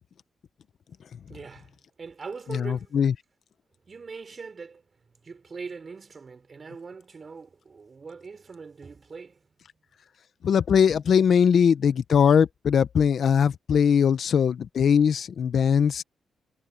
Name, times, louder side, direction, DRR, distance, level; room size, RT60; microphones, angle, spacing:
voice 1, 1.3-2.9 3.9-4.8 5.2-9.4, right 4 dB, 45° right, 5.6 m, -41 dB
voice 2, 2.5-3.1 10.4-16.0, left 7 dB, 65° left, 1.0 m, -21 dB
cardioid pair, 75°, 0 cm